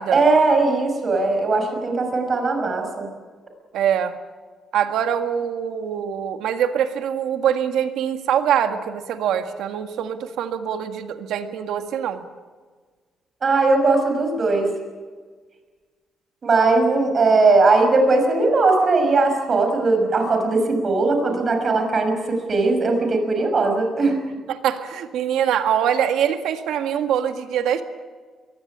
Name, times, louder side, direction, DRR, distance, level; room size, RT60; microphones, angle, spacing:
voice 1, 0.1-3.1 13.4-14.7 16.4-24.2, right 3 dB, 45° right, 5 dB, 5.9 m, -19 dB
voice 2, 3.7-4.1 4.7-12.2 24.5-27.8, right 9 dB, 85° right, 7 dB, 1.8 m, -23 dB
22.0 x 16.5 x 9.9 m, 1.5 s
cardioid pair, 90°, 0 cm